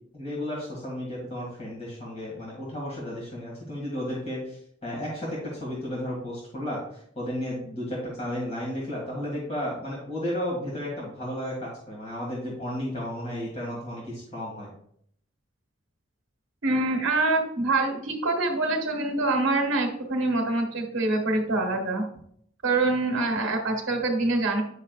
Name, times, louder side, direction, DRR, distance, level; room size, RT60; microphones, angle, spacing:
voice 1, 0.1-14.7, equal, 30° left, -5 dB, 2.2 m, -33 dB
voice 2, 16.6-22.0 22.6-24.6, right 2 dB, 85° right, 2 dB, 1.2 m, -25 dB
9.4 x 6.2 x 2.5 m, 0.66 s
head